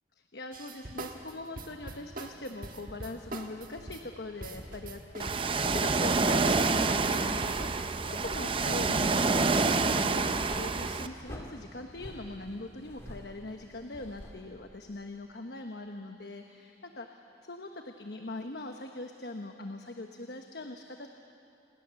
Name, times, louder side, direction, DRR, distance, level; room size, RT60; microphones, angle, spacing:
voice 1, 0.3-17.1 17.4-21.1, left 2 dB, 65° left, 4 dB, 1.1 m, -41 dB
sound 1, 0.5-7.7, right 2 dB, 50° right, 1.6 m, -43 dB
sound 2, 3.2-5.3 5.6-14.7, equal, 15° left, 2.4 m, -48 dB
Ocean, 5.2-11.1, right 3 dB, 30° right, 0.6 m, -27 dB
28.5 x 20.5 x 7.0 m, 2.6 s
head